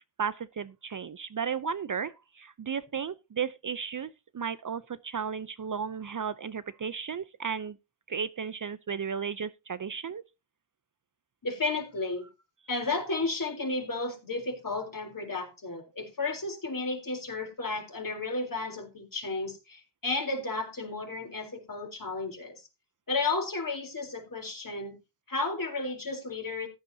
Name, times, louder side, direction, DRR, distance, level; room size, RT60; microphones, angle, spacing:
voice 1, 0.2-7.8 8.1-10.2, right 6 dB, 40° right, 0.7 m, -34 dB
voice 2, 11.4-12.3 12.7-22.6 23.1-25.0 25.3-26.7, left 3 dB, 40° left, 4.0 m, -33 dB
14.5 x 10.5 x 2.8 m
cardioid pair, 50°, 49 cm